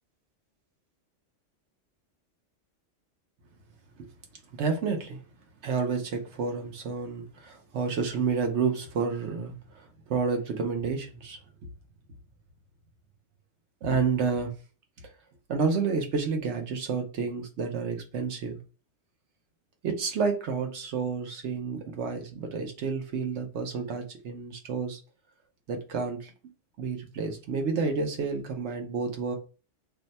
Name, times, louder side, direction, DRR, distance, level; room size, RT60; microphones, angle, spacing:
voice 1, 4.6-5.2 5.6-11.4 13.8-14.5 15.5-18.6 19.8-25.0 25.7-26.3 26.8-29.3, right 5 dB, 70° right, 0.9 m, -30 dB
2.6 x 2.2 x 3.9 m
omnidirectional pair, 1.3 m